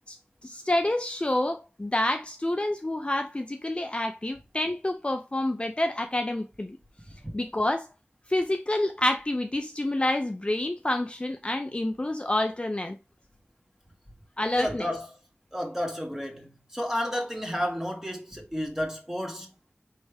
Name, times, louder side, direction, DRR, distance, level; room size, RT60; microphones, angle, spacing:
voice 1, 0.4-6.8 7.3-7.9 8.3-13.0 14.4-14.9, left 1 dB, 25° left, 0.5 m, -28 dB
voice 2, 14.5-15.1 15.5-19.5, equal, 10° right, 1.4 m, -31 dB
4.5 x 3.2 x 3.4 m
wide cardioid pair, 45°, 4 cm